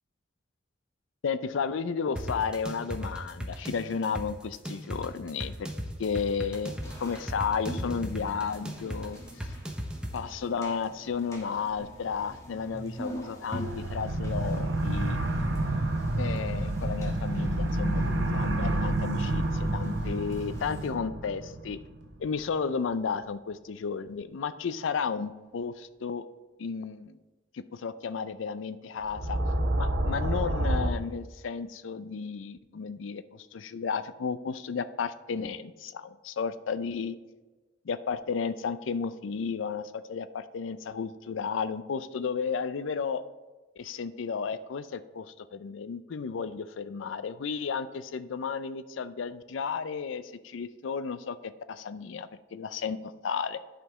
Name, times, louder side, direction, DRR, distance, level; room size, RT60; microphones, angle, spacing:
voice 1, 1.2-5.7 6.0-6.7 7.0-9.5 10.1-15.2 16.2-21.8 22.2-26.3 26.6-27.2 27.5-29.4 29.8-37.2 37.8-43.2 43.8-53.6, left 5 dB, 80° left, 13 dB, 0.4 m, -33 dB
sound 1, 2.2-10.2, equal, 5° right, 0.7 m, -37 dB
sound 2, 6.8-20.9, equal, 15° left, 1.3 m, -44 dB
sound 3, 13.6-22.1 29.1-30.9, right 1 dB, 70° right, 0.9 m, -29 dB
11.0 x 5.1 x 3.6 m, 1.2 s
head